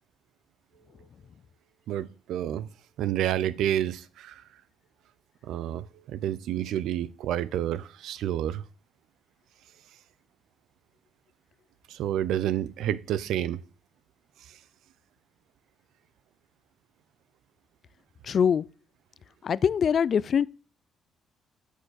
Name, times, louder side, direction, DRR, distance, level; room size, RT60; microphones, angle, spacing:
voice 1, 1.9-2.7 3.0-4.4 5.4-8.6 11.9-13.6, right 11 dB, 85° right, 0.5 m, -29 dB
voice 2, 18.3-18.6 19.4-20.5, left 7 dB, 55° left, 0.4 m, -23 dB
7.9 x 5.6 x 6.4 m
cardioid pair, 90°, 0 cm